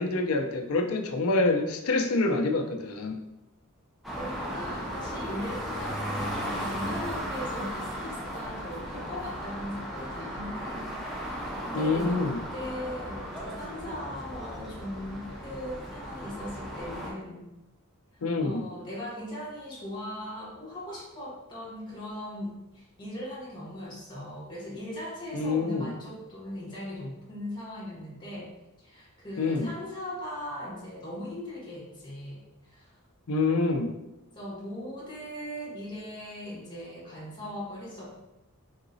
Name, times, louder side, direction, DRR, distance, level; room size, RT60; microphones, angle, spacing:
voice 1, 0.0-3.2 11.7-12.4 18.2-18.7 25.3-25.9 29.4-29.7 33.3-33.9, left 3 dB, 70° left, 5 dB, 0.5 m, -26 dB
sound 1, 4.0-17.1, equal, ahead, 0.7 m, -36 dB
voice 2, 4.2-17.5 18.1-28.5 28.8-32.9 34.3-38.2, left 1 dB, 20° left, -5 dB, 1.4 m, -39 dB
3.9 x 3.8 x 2.6 m, 0.94 s
head